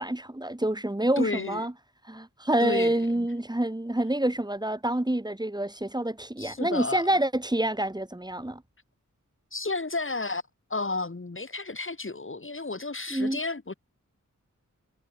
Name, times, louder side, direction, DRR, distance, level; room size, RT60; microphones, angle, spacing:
voice 1, 0.0-1.7 2.1-8.6 13.1-13.4, right 1 dB, 15° right, 2.0 m, -27 dB
voice 2, 1.2-1.7 2.6-3.3 6.4-7.0 9.5-10.4 10.7-13.7, left 3 dB, 40° left, 3.7 m, -32 dB
wide cardioid pair, 85°, 31 cm